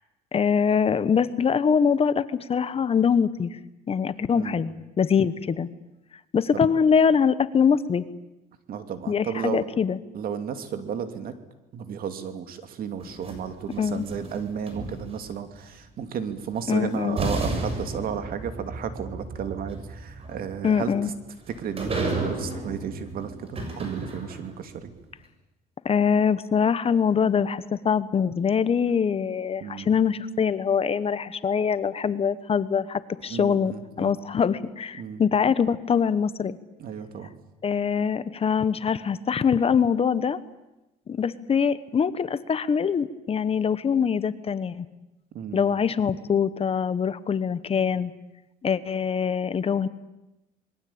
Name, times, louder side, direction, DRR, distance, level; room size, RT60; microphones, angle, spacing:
voice 1, 0.3-3.6 3.9-5.7 6.3-8.0 9.1-10.0 13.8-14.1 16.7-17.2 20.6-21.1 25.8-36.6 37.6-40.4 41.1-44.9 45.5-48.1 48.6-49.9, left 6 dB, 35° left, 14 dB, 1.2 m, -23 dB
voice 2, 8.7-9.6 10.1-11.3 11.7-20.9 21.5-24.9 29.6-29.9 33.3-34.2 35.0-35.2 36.8-37.3 45.3-45.6, right 8 dB, 60° right, 8 dB, 2.8 m, -33 dB
sound 1, 13.0-15.4 16.6-16.7 17.2-24.6, right 2 dB, 35° right, 6.8 m, -33 dB
26.5 x 22.0 x 8.8 m, 0.96 s
cardioid pair, 110°, 17 cm